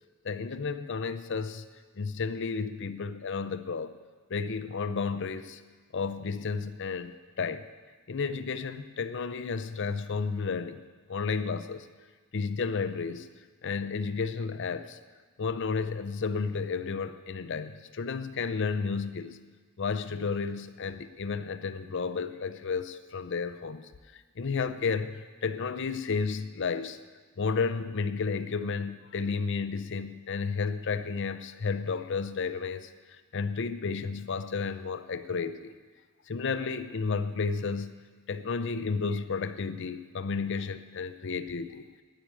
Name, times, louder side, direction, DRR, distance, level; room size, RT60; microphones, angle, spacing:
voice 1, 0.2-1.6 2.0-3.9 4.3-5.6 5.9-7.7 8.1-10.8 11.1-11.9 12.3-13.3 13.6-15.0 15.4-19.4 19.8-27.0 27.4-35.7 36.3-37.9 38.3-41.9, left 5 dB, 60° left, 12 dB, 0.6 m, -32 dB
9.8 x 9.7 x 8.8 m, 1.4 s
head